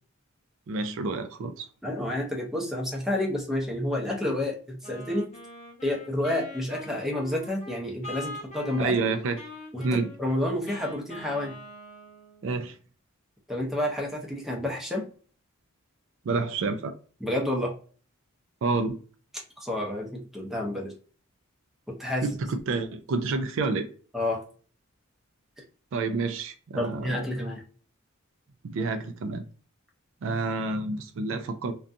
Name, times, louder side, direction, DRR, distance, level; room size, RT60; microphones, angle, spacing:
voice 1, 0.7-1.7 8.8-9.4 9.8-10.1 12.4-12.8 16.2-17.0 18.6-19.0 22.2-23.9 25.9-27.2 28.6-29.4 30.2-31.7, right 3 dB, 65° right, 0.4 m, -29 dB
voice 2, 1.8-5.3 5.8-8.9 9.7-11.6 13.5-15.1 17.2-17.7 19.6-20.9 22.0-22.3 24.1-24.4 26.8-27.6, left 1 dB, ahead, 0.6 m, -29 dB
Wind instrument woodwind instrument, 4.8-12.5, left 1 dB, 35° left, 0.8 m, -43 dB
2.5 x 2.3 x 2.5 m
head